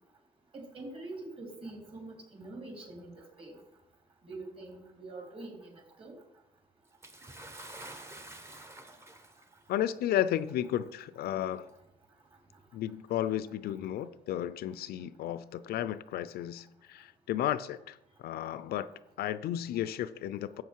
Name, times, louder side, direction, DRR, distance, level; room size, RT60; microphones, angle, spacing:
voice 1, 0.5-3.6 4.2-6.2, right 2 dB, 30° right, 3.8 m, -45 dB
Bathtub (filling or washing) / Splash splatter, 7.0-9.6 10.5-10.6 11.6-11.7, right 1 dB, 15° right, 1.1 m, -48 dB
voice 2, 9.7-11.7 12.7-18.9 19.2-20.6, left 11 dB, 65° left, 0.5 m, -33 dB
12.5 x 7.9 x 4.6 m
cardioid pair, 110°, 17 cm